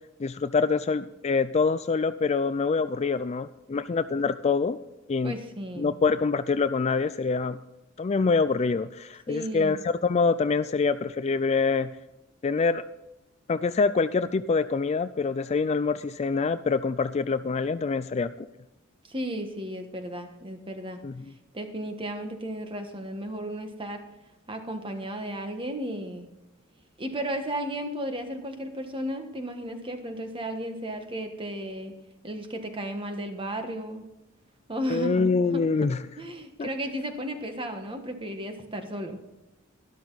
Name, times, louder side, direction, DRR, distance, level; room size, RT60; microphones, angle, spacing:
voice 1, 0.2-4.8 5.1-5.3 5.8-7.6 8.0-11.9 12.4-12.8 13.5-18.5 21.0-21.3 34.9-36.0 36.6-36.7, left 4 dB, 30° left, 12 dB, 0.3 m, -25 dB
voice 2, 5.2-5.9 9.3-9.8 19.1-21.0 21.5-24.0 24.5-26.3 27.0-31.9 32.2-34.1 34.7-35.9 36.2-39.2, right 1 dB, 25° right, 6 dB, 1.5 m, -34 dB
12.5 x 12.5 x 4.0 m, 0.94 s
head